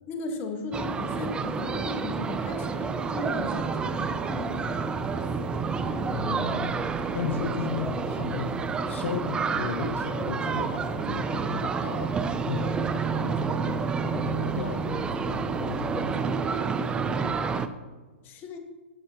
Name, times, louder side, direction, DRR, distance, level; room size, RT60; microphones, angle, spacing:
voice 1, 0.1-5.4 18.2-18.6, left 3 dB, 30° left, 4 dB, 1.6 m, -37 dB
sound 1, 0.7-17.7, right 5 dB, 15° right, 0.5 m, -29 dB
voice 2, 5.8-6.9 7.1-16.4, left 5 dB, 70° left, 7 dB, 0.8 m, -35 dB
14.0 x 6.5 x 3.0 m, 1.3 s
hypercardioid pair, 125°, 7 cm